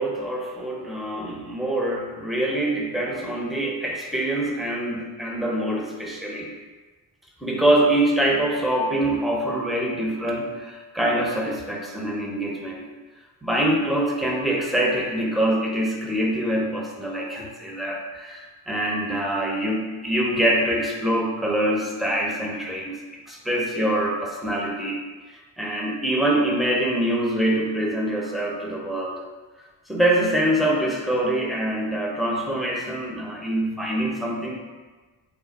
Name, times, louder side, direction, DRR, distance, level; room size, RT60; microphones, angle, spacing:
voice 1, 0.0-6.5 7.4-12.9 13.4-23.0 23.3-25.0 25.6-29.2 29.9-34.5, right 1 dB, ahead, -1 dB, 0.8 m, -24 dB
3.4 x 2.2 x 4.0 m, 1.3 s
supercardioid pair, 40°, 49 cm